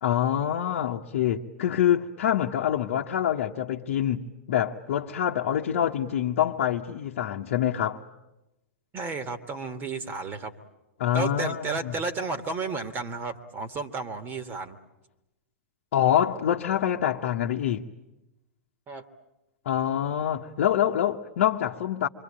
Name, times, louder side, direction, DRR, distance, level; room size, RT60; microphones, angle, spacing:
voice 1, 0.0-8.0 11.0-11.9 15.9-17.8 19.6-22.1, left 10 dB, 55° left, 1.1 m, -26 dB
voice 2, 8.9-10.5 11.1-14.8 18.9-19.0, right 4 dB, 25° right, 1.7 m, -32 dB
26.5 x 24.0 x 8.8 m
figure-of-eight pair, 100°, 8 cm